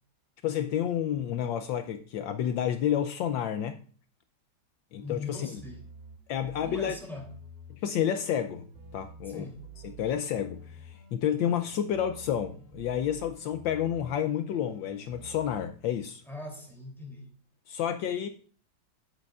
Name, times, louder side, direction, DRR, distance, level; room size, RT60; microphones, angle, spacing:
voice 1, 0.4-3.8 4.9-5.5 6.3-6.9 7.7-8.7 8.9-9.4 9.8-16.2 17.7-18.3, left 9 dB, 75° left, 1.3 m, -30 dB
voice 2, 5.0-5.9 6.6-7.4 9.2-9.7 16.3-17.3, left 3 dB, ahead, 2.6 m, -41 dB
sound 1, 5.0-7.8 8.1-15.7, right 2 dB, 30° right, 2.4 m, -49 dB
9.7 x 8.9 x 2.4 m
omnidirectional pair, 2.2 m